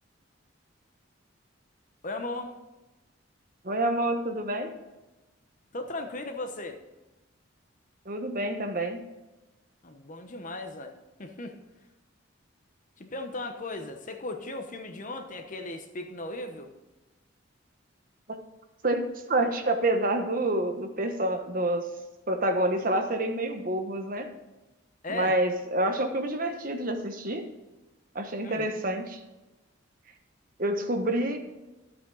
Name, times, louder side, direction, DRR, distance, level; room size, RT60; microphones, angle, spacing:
voice 1, 2.0-2.6 5.7-6.8 9.8-10.9 11.2-11.5 13.0-16.7 25.0-25.4 28.4-28.8, left 2 dB, 40° left, 6 dB, 1.0 m, -37 dB
voice 2, 3.6-4.7 8.1-9.0 18.8-19.0 19.3-21.8 22.3-24.3 25.1-27.4 28.1-29.2 30.6-31.4, right 1 dB, 45° right, 5 dB, 1.2 m, -27 dB
12.5 x 8.5 x 4.0 m, 1.1 s
head